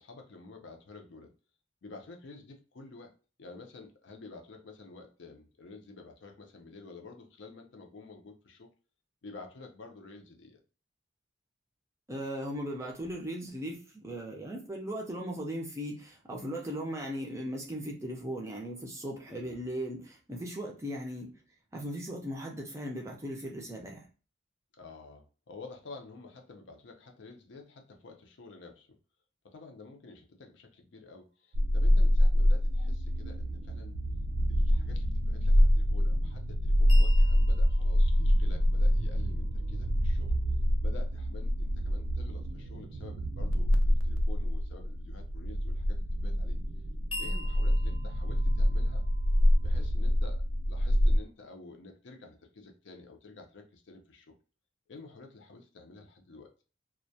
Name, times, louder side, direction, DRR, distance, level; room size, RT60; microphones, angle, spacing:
voice 1, 0.0-1.3 1.8-3.1 3.4-8.7 9.2-10.6 19.3-19.7 24.8-29.0 29.4-34.0 34.5-40.4 40.8-46.6 47.2-49.1 49.6-54.3 54.9-56.5, left 3 dB, 70° left, 4 dB, 0.5 m, -50 dB
voice 2, 12.1-21.3 21.7-24.1, equal, 15° right, 0 dB, 0.4 m, -38 dB
sound 1, 31.5-51.2, equal, 85° right, 0.4 m, -26 dB
sound 2, 36.9-40.9 47.1-49.9, left 1 dB, 25° left, 0.7 m, -46 dB
2.2 x 2.1 x 2.6 m, 0.35 s
head